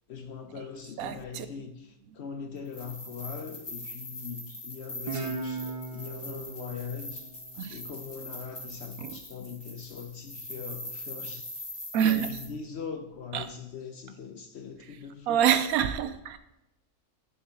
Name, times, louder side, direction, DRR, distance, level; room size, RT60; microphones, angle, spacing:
voice 1, 0.1-7.4 7.7-11.6 12.0-15.5, left 6 dB, 60° left, 0.7 m, -41 dB
voice 2, 1.0-1.5 7.6-7.8 9.0-9.1 11.9-12.3 13.3-13.5 15.3-16.4, right 9 dB, 80° right, 1.1 m, -26 dB
sound 1, 2.6-12.5, left 1 dB, 15° left, 1.5 m, -42 dB
Guitar, 5.1-8.3, right 3 dB, 40° right, 0.5 m, -38 dB
11.0 x 6.7 x 2.8 m
omnidirectional pair, 1.5 m